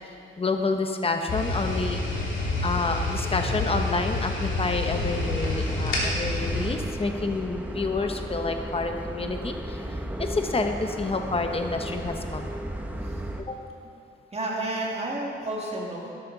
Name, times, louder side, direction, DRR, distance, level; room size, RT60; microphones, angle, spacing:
voice 1, 0.4-2.0 2.6-9.8 10.2-12.5 13.4-13.6, left 3 dB, 25° left, 5 dB, 1.0 m, -28 dB
sound 1, 1.3-6.7, left 2 dB, 65° left, 2.9 m, -28 dB
sound 2, 4.9-13.4, right 1 dB, 5° right, 0.8 m, -34 dB
voice 2, 14.3-16.1, right 2 dB, 30° right, -3 dB, 2.2 m, -31 dB
12.0 x 12.0 x 4.0 m, 2.6 s
cardioid pair, 105°, 21 cm